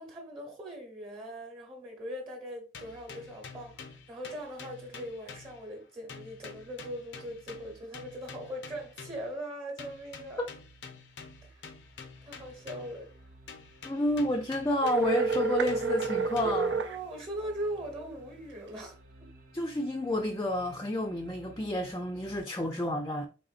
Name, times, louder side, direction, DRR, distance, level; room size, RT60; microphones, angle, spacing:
voice 1, 0.0-10.5 11.5-11.6 12.2-13.1 16.4-19.3, right 1 dB, 30° right, 1.0 m, -40 dB
sound 1, 2.7-5.8 6.1-9.4 9.8-13.1 13.5-16.8, left 5 dB, 85° left, 0.6 m, -48 dB
sound 2, 11.0-22.4, right 1 dB, 55° right, 0.9 m, -55 dB
voice 2, 13.8-16.7 19.5-23.3, left 1 dB, 20° left, 0.4 m, -30 dB
sound 3, 14.8-17.0, right 5 dB, 85° right, 0.5 m, -29 dB
3.9 x 3.5 x 2.4 m
head